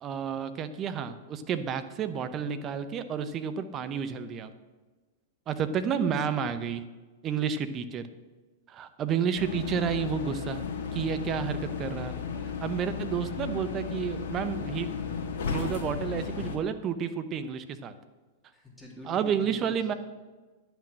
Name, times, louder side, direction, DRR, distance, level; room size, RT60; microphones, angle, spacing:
voice 1, 0.0-4.5 5.5-6.8 7.2-8.0 8.7-10.6 10.9-12.1 12.6-14.9 15.5-17.9 19.1-19.9, right 7 dB, 30° right, 10 dB, 0.8 m, -30 dB
sound 1, 9.4-16.6, left 5 dB, 60° left, 1.5 m, -34 dB
voice 2, 18.5-20.0, left 1 dB, 5° left, -3 dB, 2.6 m, -45 dB
10.5 x 6.2 x 7.4 m, 1.3 s
hypercardioid pair, 105°, 0 cm